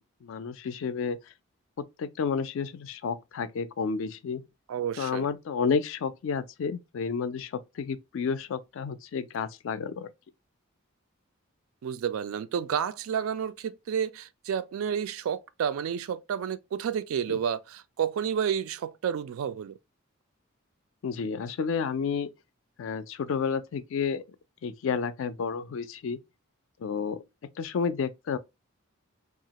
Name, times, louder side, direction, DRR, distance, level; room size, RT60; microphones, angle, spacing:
voice 1, 0.2-1.3 1.8-4.4 5.0-10.1 17.3-17.4 21.0-22.3 22.8-24.2 24.6-26.2 26.8-27.2 27.6-28.4, left 6 dB, 60° left, 0.3 m, -31 dB
voice 2, 4.7-5.3 11.8-19.8, right 8 dB, 75° right, 0.3 m, -30 dB
2.8 x 2.4 x 2.8 m
head